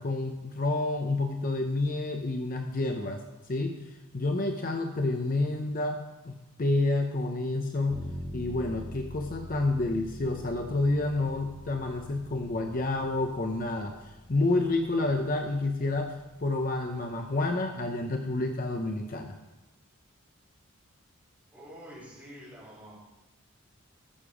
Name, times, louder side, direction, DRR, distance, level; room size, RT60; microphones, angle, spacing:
voice 1, 0.0-3.2 3.5-3.8 4.1-6.0 6.2-8.0 8.3-16.1 16.4-19.3, left 2 dB, 40° left, 4 dB, 0.7 m, -29 dB
sound 1, 7.9-17.6, equal, 20° left, 1.6 m, -45 dB
voice 2, 21.5-23.0, equal, 10° right, -8 dB, 4.7 m, -47 dB
14.0 x 6.8 x 4.9 m, 1.1 s
head